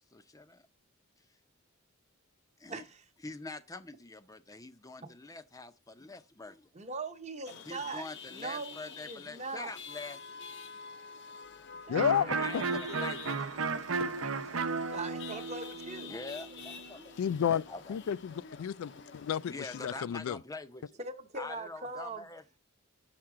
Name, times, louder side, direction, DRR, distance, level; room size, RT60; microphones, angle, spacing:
voice 1, 0.1-0.6 2.6-2.8 3.2-6.7 7.7-10.2 12.2-13.8 16.0-17.1 17.7-18.0 19.5-21.0 21.3-22.6, left 3 dB, 15° left, 0.5 m, -45 dB
voice 2, 2.7-3.0 6.7-8.1 8.3-9.7 11.9-13.6 14.9-16.1 21.0-22.2, right 3 dB, 30° right, 0.9 m, -41 dB
Chatter / Vehicle horn car horn honking / Traffic noise roadway noise, 7.4-20.0, left 6 dB, 55° left, 0.7 m, -49 dB
voice 3, 11.9-12.2 17.2-19.5 19.8-20.4, left 8 dB, 85° left, 0.3 m, -31 dB
Electric guitar, 11.9-17.6, right 4 dB, 80° right, 0.8 m, -35 dB
7.6 x 5.9 x 4.8 m
head